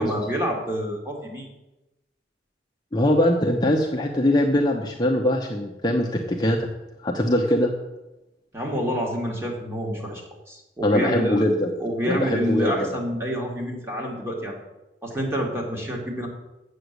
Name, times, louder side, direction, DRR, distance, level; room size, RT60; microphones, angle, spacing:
voice 1, 0.0-1.5 8.5-11.5 11.8-14.6 15.0-16.3, equal, 15° right, -1 dB, 2.3 m, -28 dB
voice 2, 2.9-6.6 7.0-7.7 10.8-11.7 12.0-12.9, left 1 dB, 25° left, 1 dB, 0.8 m, -22 dB
8.0 x 6.6 x 8.1 m, 0.99 s
head